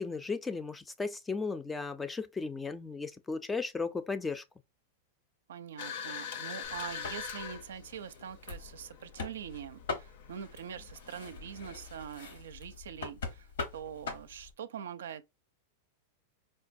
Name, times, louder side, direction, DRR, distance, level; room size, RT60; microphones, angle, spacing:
voice 1, 0.0-4.4, left 4 dB, 10° left, 0.3 m, -35 dB
voice 2, 5.5-15.3, right 8 dB, 90° right, 0.4 m, -44 dB
sound 1, 5.8-11.6, left 7 dB, 70° left, 0.5 m, -44 dB
sound 2, 6.6-14.5, left 4 dB, 90° left, 1.0 m, -43 dB
4.5 x 2.2 x 2.5 m
supercardioid pair, 140°, 0 cm